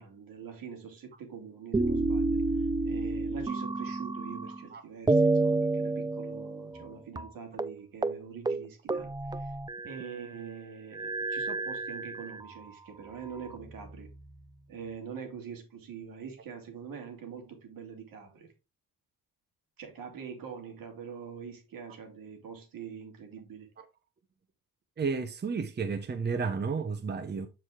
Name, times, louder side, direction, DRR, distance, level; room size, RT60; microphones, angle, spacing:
voice 1, 0.0-9.6 9.8-14.1 14.7-18.5 19.8-23.7, right 6 dB, 75° right, 2.7 m, -44 dB
sound 1, 1.7-4.7 5.1-6.9 7.2-7.3 7.6-7.8 8.0-8.2 8.5-10.2 10.9-12.5 13.2-14.1, right 2 dB, 10° right, 0.4 m, -30 dB
voice 2, 25.0-27.5, right 5 dB, 30° right, 0.9 m, -32 dB
7.7 x 4.8 x 3.6 m
cardioid pair, 100°, 34 cm